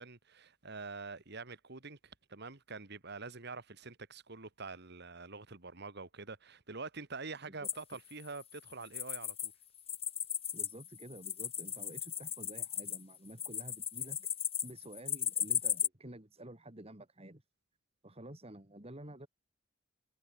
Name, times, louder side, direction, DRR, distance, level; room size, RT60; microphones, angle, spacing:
voice 1, 0.0-9.5, right 4 dB, 60° right, 2.3 m, -46 dB
sound 1, 7.6-9.5 9.8-15.9, left 9 dB, 30° left, 3.2 m, -36 dB
voice 2, 10.5-14.3 14.6-17.4 18.0-19.3, right 1 dB, 30° right, 3.3 m, -50 dB
head